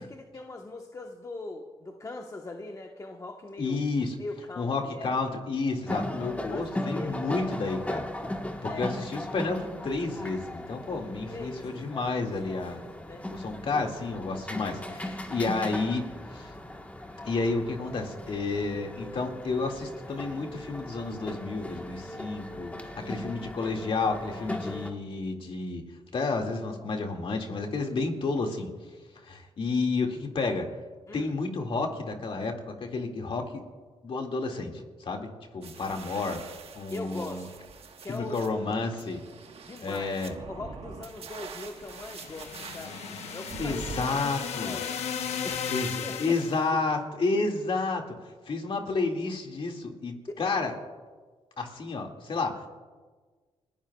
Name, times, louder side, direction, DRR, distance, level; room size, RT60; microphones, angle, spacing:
voice 1, 0.0-3.8 4.2-5.1 6.5-7.8 8.2-8.3 8.6-8.9 11.3-13.2 13.7-13.9 22.8-23.2 31.1-31.3 36.9-37.5 38.0-38.7 39.6-43.0 43.3-43.8 44.1-44.3 44.6-45.1 45.4-45.7 46.0-46.4 50.3-50.4, left 2 dB, 30° left, 2 dB, 1.2 m, -41 dB
voice 2, 3.6-4.1 4.6-8.0 8.6-12.8 13.3-16.0 16.3-16.5 17.2-25.8 26.1-28.7 29.2-30.7 31.1-33.6 34.0-35.3 35.5-36.4 36.7-37.5 38.1-39.2 39.8-40.3 43.6-44.8 45.7-45.9 46.2-48.2 48.5-50.7 51.6-52.7, left 3 dB, 55° left, 2 dB, 2.2 m, -31 dB
sound 1, 5.9-24.9, left 1 dB, 15° left, 1.4 m, -38 dB
sound 2, 35.6-44.1, right 5 dB, 65° right, 1.4 m, -45 dB
sound 3, 41.8-46.7, left 7 dB, 80° left, 1.1 m, -35 dB
29.5 x 15.0 x 2.4 m, 1.4 s
cardioid pair, 75°, 11 cm